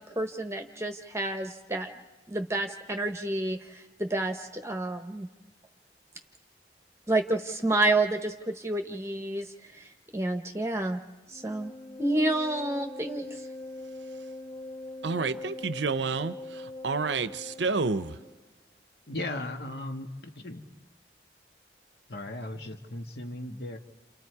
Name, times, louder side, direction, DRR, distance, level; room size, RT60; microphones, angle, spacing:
voice 1, 0.2-1.9 2.3-5.3 7.1-11.0 11.3-11.7 12.0-13.5, right 2 dB, 15° right, 5 dB, 1.0 m, -29 dB
Wind instrument woodwind instrument, 11.3-18.3, left 2 dB, 35° left, 2.3 m, -42 dB
voice 2, 15.0-18.1, right 4 dB, 85° right, 13 dB, 0.8 m, -29 dB
voice 3, 19.1-20.7 22.1-23.8, left 1 dB, 60° left, 4 dB, 2.0 m, -37 dB
29.5 x 29.0 x 4.8 m, 1.2 s
head